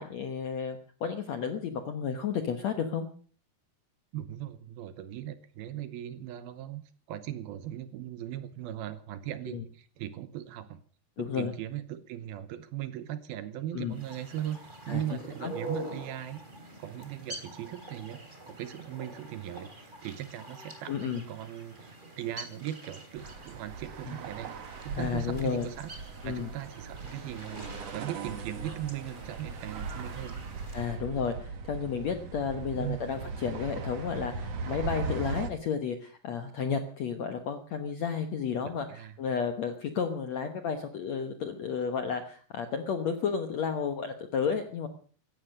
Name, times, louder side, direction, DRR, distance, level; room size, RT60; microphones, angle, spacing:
voice 1, 0.0-3.1 9.5-9.6 11.2-11.5 13.7-14.0 14.9-15.0 15.4-15.5 20.9-21.2 24.1-24.2 25.0-25.7 26.2-26.5 30.7-44.9, left 6 dB, 65° left, 8 dB, 1.7 m, -32 dB
voice 2, 4.1-6.8 7.1-10.8 11.2-16.4 16.8-24.5 24.8-25.9 26.2-30.4 32.7-33.0 38.6-39.2, right 12 dB, 75° right, 13 dB, 2.7 m, -39 dB
sound 1, 13.9-31.0, right 2 dB, 15° right, 2.7 m, -46 dB
sound 2, 23.2-35.5, right 4 dB, 55° right, 2.0 m, -39 dB
17.0 x 13.0 x 6.5 m, 0.43 s
omnidirectional pair, 4.8 m